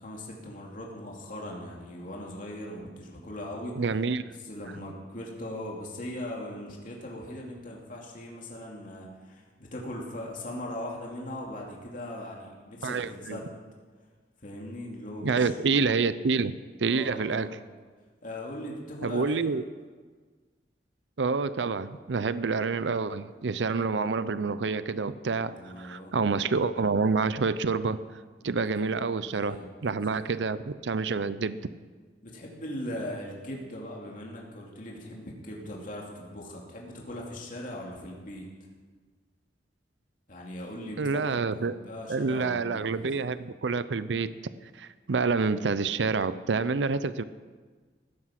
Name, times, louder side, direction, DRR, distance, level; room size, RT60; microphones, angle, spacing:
voice 1, 0.0-3.8 4.4-13.5 14.4-15.5 16.8-17.5 18.2-19.5 25.4-26.1 28.4-28.5 29.2-29.7 30.1-30.3 32.2-38.5 40.3-43.0, left 1 dB, 50° left, -2 dB, 2.6 m, -39 dB
voice 2, 3.8-4.2 12.8-13.4 15.2-16.5 16.8-17.6 19.0-19.6 21.2-28.0 28.4-29.6 29.8-31.6 41.0-41.7 42.1-44.3 44.7-47.2, right 4 dB, 90° right, 14 dB, 0.6 m, -28 dB
16.0 x 12.5 x 5.9 m, 1.5 s
head